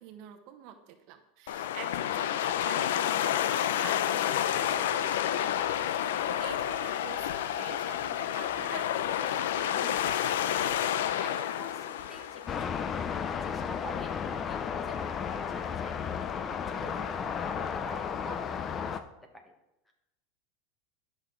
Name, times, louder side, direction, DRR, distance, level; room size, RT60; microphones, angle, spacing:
voice 1, 0.0-10.3, right 9 dB, 55° right, 7 dB, 0.9 m, -48 dB
sound 1, 1.5-12.6, left 10 dB, 85° left, 0.5 m, -30 dB
sound 2, 2.3-19.0, left 4 dB, 60° left, 2.9 m, -52 dB
voice 2, 10.9-19.0 19.3-19.5 19.8-19.9, left 1 dB, 10° left, 3 dB, 1.3 m, -47 dB
sound 3, 12.5-19.0, left 7 dB, 25° left, 0.5 m, -33 dB
11.0 x 6.2 x 3.8 m, 0.90 s
supercardioid pair, 150°, 0 cm